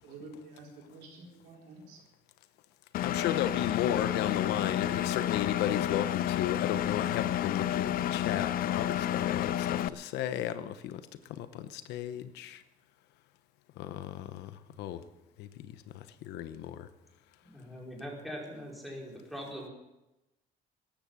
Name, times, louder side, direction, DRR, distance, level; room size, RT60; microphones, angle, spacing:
voice 1, 0.0-2.0, right 2 dB, 85° right, 0 dB, 4.1 m, -49 dB
Engine, 2.9-9.9, left 11 dB, 60° left, 0.5 m, -30 dB
voice 2, 3.0-11.0 11.4-12.6 13.8-14.5 14.8-15.0 15.4-15.7 15.9-16.9, left 11 dB, 85° left, 12 dB, 1.0 m, -34 dB
voice 3, 17.4-19.7, equal, ahead, -2 dB, 5.1 m, -42 dB
14.0 x 11.0 x 7.5 m, 0.96 s
cardioid pair, 110°, 17 cm